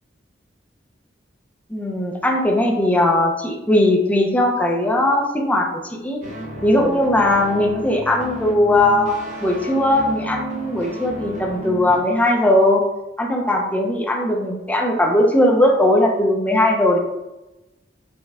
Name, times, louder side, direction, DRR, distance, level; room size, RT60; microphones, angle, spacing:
voice 1, 1.7-6.2 6.6-9.2 9.4-12.8 13.2-17.0, left 1 dB, 10° left, 0 dB, 0.4 m, -18 dB
Grunge Echo Guitar, 6.2-12.0, right 1 dB, 40° right, 0.5 m, -32 dB
4.2 x 2.2 x 3.4 m, 0.99 s
head